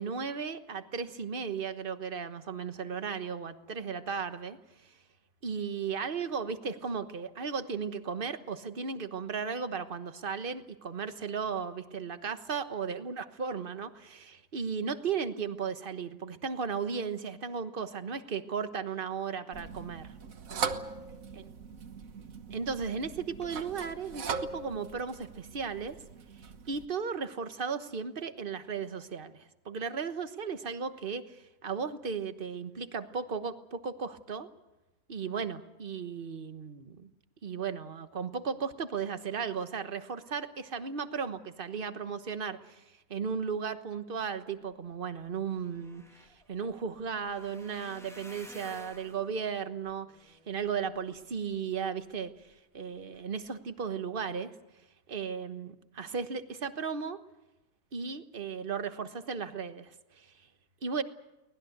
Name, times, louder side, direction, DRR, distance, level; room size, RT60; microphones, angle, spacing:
voice 1, 0.0-4.6 4.8-4.9 5.4-20.1 22.5-24.3 24.5-26.0 26.7-34.5 35.1-37.1 37.4-42.8 43.1-54.5 55.1-57.2 57.9-60.3 60.8-61.0, right 6 dB, 35° right, 10 dB, 1.2 m, -35 dB
sound 1, 19.5-26.9, right 5 dB, 50° right, 1.6 m, -40 dB
sound 2, 45.2-51.6 52.1-52.5 53.0-53.2 53.4-53.5, equal, ahead, 1.5 m, -54 dB
24.0 x 19.5 x 8.0 m, 0.96 s
omnidirectional pair, 2.0 m